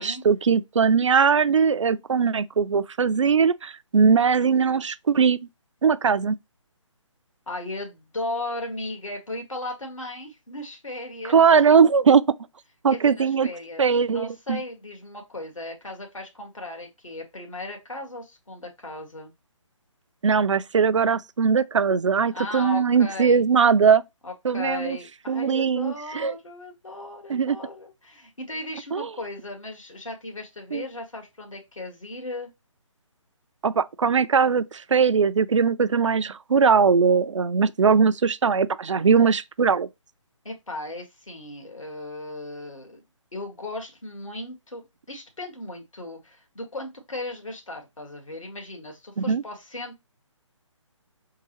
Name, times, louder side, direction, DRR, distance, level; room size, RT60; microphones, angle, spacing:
voice 1, 0.0-5.4 5.8-6.4 11.3-12.3 12.8-13.5 13.8-14.6 20.2-24.0 24.4-25.0 25.3-26.3 27.3-27.6 28.9-29.1 30.7-30.8 33.6-39.9 49.2-49.4, right 6 dB, 65° right, 0.4 m, -20 dB
voice 2, 7.5-11.4 12.9-19.3 22.3-23.4 24.2-32.5 40.5-43.0 43.3-50.0, left 2 dB, 80° left, 1.7 m, -36 dB
3.9 x 3.7 x 3.0 m
figure-of-eight pair, 145°, 16 cm